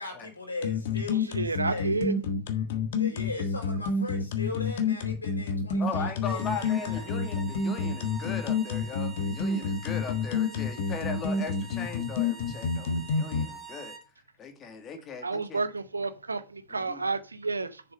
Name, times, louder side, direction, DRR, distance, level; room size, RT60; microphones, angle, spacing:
voice 1, 0.0-2.0 3.0-7.1, left 3 dB, 80° left, 3.8 m, -39 dB
sound 1, 0.6-13.4, left 5 dB, 55° left, 1.5 m, -28 dB
voice 2, 1.3-2.1 15.2-17.8, right 3 dB, 80° right, 0.8 m, -30 dB
voice 3, 5.8-13.9 14.4-15.6 16.7-17.0, left 5 dB, 25° left, 2.0 m, -38 dB
sound 2, 6.2-14.1, right 5 dB, 5° left, 1.9 m, -46 dB
7.0 x 6.9 x 5.3 m
figure-of-eight pair, 90°, 0 cm